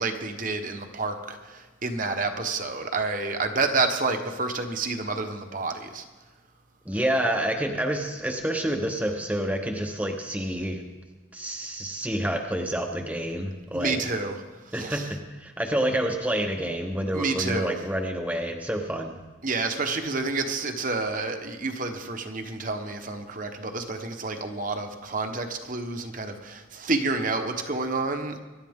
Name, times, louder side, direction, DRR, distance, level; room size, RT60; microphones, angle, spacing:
voice 1, 0.0-6.0 13.7-14.4 14.7-15.1 17.1-17.8 19.4-28.4, right 3 dB, 40° right, 5 dB, 1.1 m, -29 dB
voice 2, 6.9-10.8 11.3-14.0 14.7-19.2, right 1 dB, 5° right, 2 dB, 0.9 m, -28 dB
23.5 x 11.5 x 3.7 m, 1.3 s
head